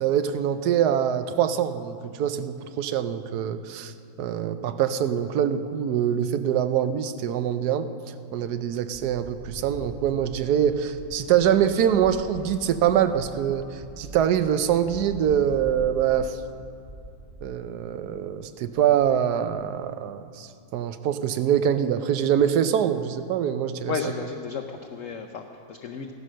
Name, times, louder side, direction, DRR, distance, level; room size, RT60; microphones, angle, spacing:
voice 1, 0.0-3.9 4.2-7.9 8.3-16.4 17.4-23.9, right 9 dB, 70° right, 11 dB, 1.1 m, -24 dB
sound 1, 8.9-18.3 18.6-19.9, right 1 dB, 30° right, 1.7 m, -44 dB
voice 2, 23.9-26.1, left 5 dB, 60° left, 4 dB, 0.9 m, -33 dB
15.5 x 11.0 x 6.3 m, 2.5 s
omnidirectional pair, 2.1 m